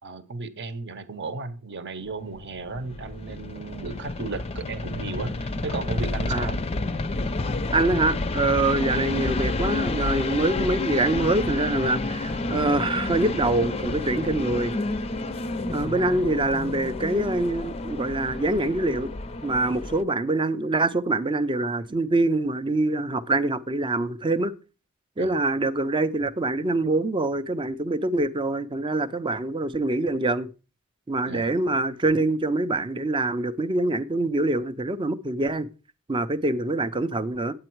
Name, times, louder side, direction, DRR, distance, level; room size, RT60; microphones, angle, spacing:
voice 1, 0.0-6.6 15.9-16.1 25.2-25.4 31.2-31.5, right 3 dB, 55° right, 0.9 m, -35 dB
sound 1, 2.4-20.0, left 2 dB, 30° left, 0.5 m, -30 dB
voice 2, 7.7-14.7 15.7-19.1 19.4-24.5 25.2-30.5 31.1-35.7 36.1-37.5, right 2 dB, 20° right, 0.5 m, -25 dB
8.8 x 8.6 x 4.5 m
head